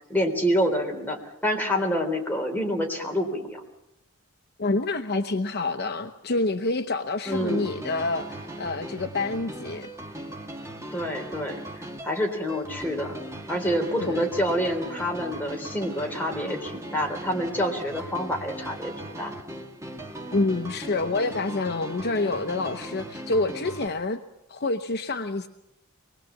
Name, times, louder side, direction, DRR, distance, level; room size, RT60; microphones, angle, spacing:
voice 1, 0.1-3.6 7.3-7.7 10.9-11.6 12.0-13.2 13.5-19.3, equal, 10° left, 1 dB, 3.5 m, -27 dB
voice 2, 4.6-9.9 14.0-14.2 20.3-24.2 24.5-25.5, left 2 dB, 50° left, 7 dB, 0.9 m, -27 dB
sound 1, 7.3-23.9, right 1 dB, 15° right, 1.9 m, -39 dB
24.0 x 20.5 x 7.3 m, 0.86 s
head